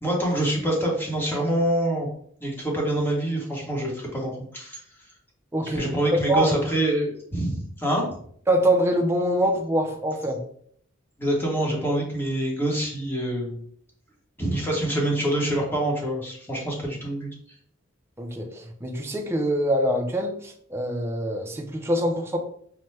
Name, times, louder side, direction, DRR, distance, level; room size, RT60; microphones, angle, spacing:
voice 1, 0.0-2.1 2.4-4.8 5.6-8.1 11.2-13.6 14.4-17.3, right 1 dB, 10° left, -2 dB, 1.0 m, -26 dB
voice 2, 5.5-6.5 8.5-10.4 18.2-22.4, right 1 dB, 10° right, 2 dB, 0.4 m, -24 dB
5.5 x 2.2 x 3.2 m, 0.62 s
head